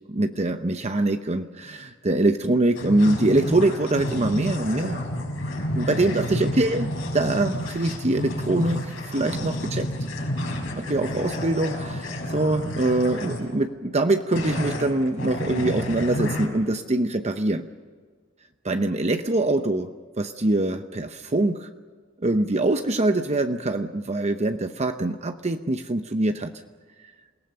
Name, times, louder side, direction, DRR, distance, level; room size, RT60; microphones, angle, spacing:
voice 1, 0.1-5.1 5.7-9.9 10.8-17.7 18.6-19.9 20.2-21.7 22.2-26.5, right 2 dB, 35° right, 7 dB, 0.8 m, -24 dB
sound 1, 2.7-13.5 14.3-16.5, left 1 dB, 70° left, 5.7 m, -30 dB
28.0 x 18.5 x 6.8 m, 1.5 s
head